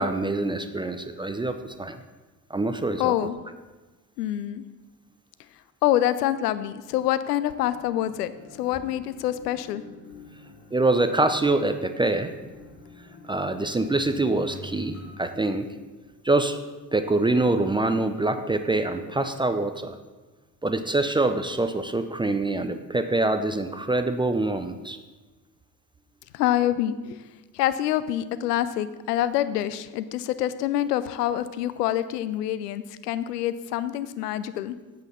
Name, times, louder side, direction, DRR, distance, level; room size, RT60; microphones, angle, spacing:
voice 1, 0.0-2.0 2.5-3.1 10.7-12.3 13.3-15.7 16.2-16.6 16.9-20.0 20.6-25.0, right 2 dB, 10° right, 8 dB, 0.5 m, -25 dB
voice 2, 3.0-3.4 4.2-4.6 5.8-8.3 8.6-9.8 26.3-27.2 27.5-34.8, left 12 dB, 70° left, 14 dB, 0.6 m, -26 dB
sound 1, 7.6-15.1, left 2 dB, 40° left, 3.9 m, -46 dB
11.5 x 8.1 x 4.0 m, 1.2 s
figure-of-eight pair, 50°, 50 cm